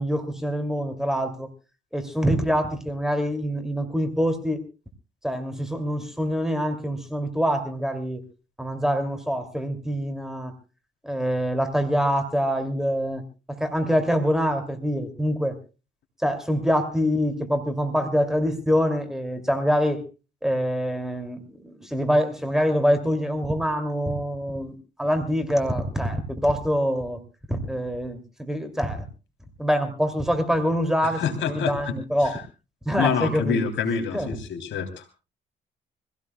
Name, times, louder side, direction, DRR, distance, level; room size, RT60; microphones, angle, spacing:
voice 1, 0.0-1.5 1.9-4.6 5.2-8.3 8.6-10.5 11.0-15.6 16.2-20.0 20.4-27.2 27.5-29.0 29.6-32.4 32.8-33.6 34.1-34.3, equal, ahead, 7 dB, 2.7 m, -25 dB
voice 2, 31.0-31.9 32.2-32.4 33.0-35.2, left 6 dB, 75° left, 6 dB, 3.2 m, -27 dB
25.5 x 16.5 x 2.3 m, 0.30 s
cardioid pair, 90°, 20 cm